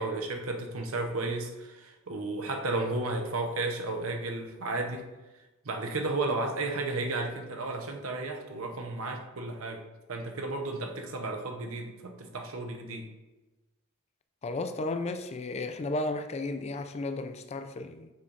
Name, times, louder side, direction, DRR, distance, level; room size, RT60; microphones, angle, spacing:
voice 1, 0.0-5.0 5.6-9.8 10.1-13.1, right 2 dB, 75° right, 0.8 m, -33 dB
voice 2, 14.4-18.1, left 2 dB, 30° left, 0.4 m, -33 dB
7.3 x 5.4 x 2.5 m
head